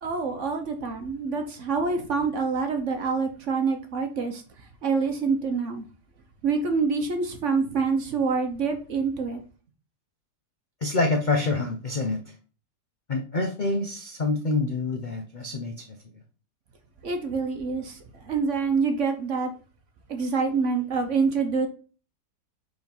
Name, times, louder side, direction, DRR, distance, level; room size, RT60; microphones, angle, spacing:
voice 1, 0.0-5.9 6.4-9.4 17.0-19.5 20.1-21.7, right 4 dB, 55° right, 1.0 m, -26 dB
voice 2, 10.8-12.2 13.1-16.0, left 3 dB, 55° left, 0.5 m, -26 dB
4.9 x 3.9 x 5.3 m
omnidirectional pair, 1.8 m